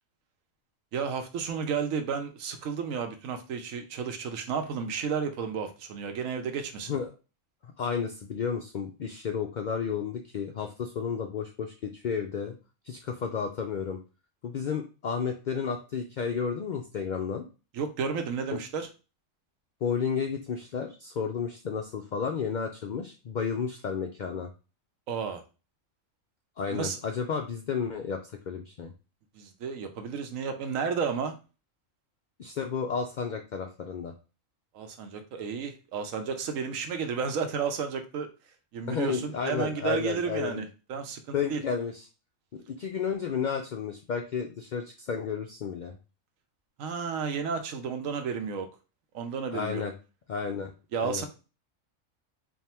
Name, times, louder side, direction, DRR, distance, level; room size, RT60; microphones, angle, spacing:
voice 1, 0.9-7.0 17.7-18.9 25.1-25.4 26.7-27.0 29.3-31.3 34.7-38.3 38.7-41.6 46.8-48.7 49.1-49.8 50.9-51.3, right 6 dB, 85° right, 6 dB, 1.1 m, -32 dB
voice 2, 7.6-12.6 12.9-14.0 14.4-17.5 19.8-24.5 26.6-28.2 28.5-28.9 32.4-34.1 38.9-40.6 41.3-42.0 42.7-46.0 49.5-49.9 50.3-50.7 51.0-51.2, left 6 dB, 85° left, 4 dB, 0.4 m, -32 dB
3.5 x 2.4 x 4.3 m, 0.33 s
omnidirectional pair, 1.4 m